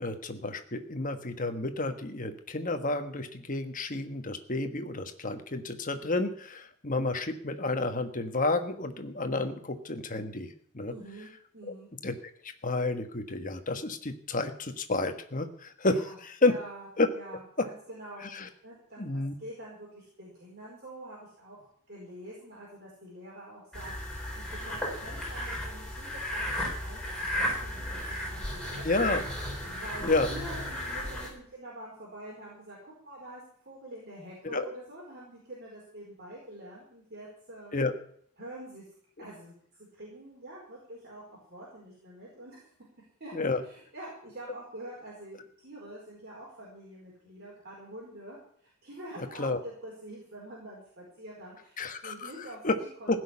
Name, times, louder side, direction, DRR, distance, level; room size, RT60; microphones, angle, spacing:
voice 1, 0.0-10.9 12.0-12.1 12.6-16.5 17.0-17.1 18.2-18.5 19.0-19.3 28.8-29.2 30.0-30.3 34.4-34.7 37.7-37.9 43.3-43.6 49.4-49.6 51.8-52.7 53.1-53.2, left 2 dB, 35° left, 7 dB, 1.4 m, -30 dB
voice 2, 10.9-11.9 15.9-29.2 29.6-37.7 38.4-38.9 39.2-39.5 39.8-42.7 43.2-53.2, right 1 dB, 45° right, -5 dB, 4.8 m, -46 dB
sound 1, 23.7-31.3, left 1 dB, 5° left, 4.1 m, -34 dB
16.0 x 6.4 x 9.8 m, 0.62 s
head